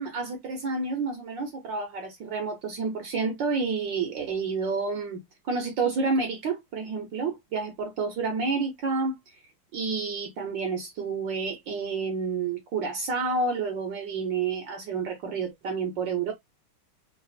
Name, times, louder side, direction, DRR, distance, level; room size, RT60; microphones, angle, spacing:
voice 1, 0.0-5.2 5.4-9.2 9.7-16.3, right 4 dB, 65° right, 1.4 m, -29 dB
3.8 x 2.4 x 2.6 m
omnidirectional pair, 2.4 m